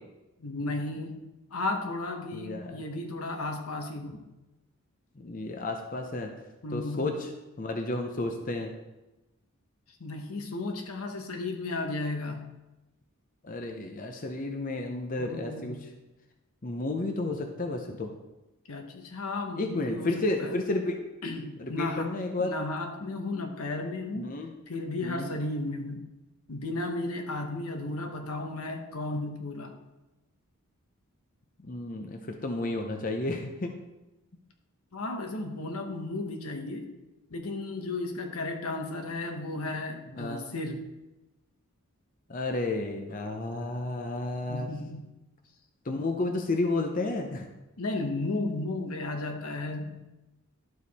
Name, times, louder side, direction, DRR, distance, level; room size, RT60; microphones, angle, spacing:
voice 1, 0.4-1.2 1.5-4.2 6.6-7.1 10.0-12.5 15.2-15.9 18.7-20.6 21.2-22.1 22.4-24.3 24.7-26.1 26.5-29.7 34.9-36.9 37.3-40.8 44.5-45.0 47.8-50.1, left 2 dB, 80° left, 4 dB, 1.1 m, -34 dB
voice 2, 2.3-2.8 5.2-6.3 6.7-7.3 7.6-8.7 13.4-15.8 16.6-18.1 19.6-21.0 21.6-22.5 24.2-24.5 25.0-25.3 31.6-33.7 40.1-40.4 42.3-44.7 45.8-47.5, left 2 dB, 35° left, 3 dB, 0.7 m, -31 dB
11.5 x 4.7 x 4.1 m, 1.0 s
head